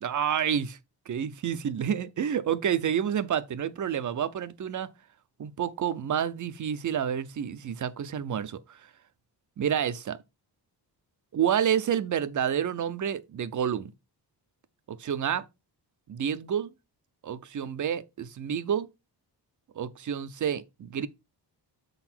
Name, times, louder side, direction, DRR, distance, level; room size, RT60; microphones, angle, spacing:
voice 1, 0.0-0.8 1.1-4.9 5.4-8.6 9.6-10.2 11.3-13.9 14.9-15.4 16.1-16.7 17.2-18.9 19.8-21.1, right 8 dB, 45° right, 0.6 m, -29 dB
6.7 x 4.0 x 4.3 m
wide cardioid pair, 155°, 41 cm